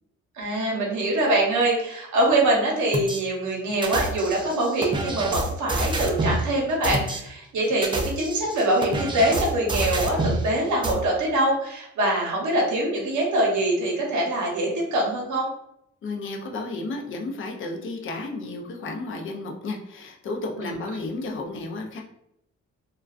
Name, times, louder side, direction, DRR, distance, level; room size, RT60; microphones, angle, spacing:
voice 1, 0.4-15.5 20.6-20.7, right 1 dB, 70° right, -1 dB, 0.9 m, -24 dB
sound 1, 2.9-3.2 3.8-6.4 6.8-7.2 7.7-10.4 10.8-10.9, right 2 dB, 15° right, 0.3 m, -27 dB
voice 2, 16.0-22.0, left 2 dB, 45° left, 2 dB, 0.5 m, -32 dB
2.3 x 2.3 x 2.3 m, 0.77 s
cardioid pair, 90°, 30 cm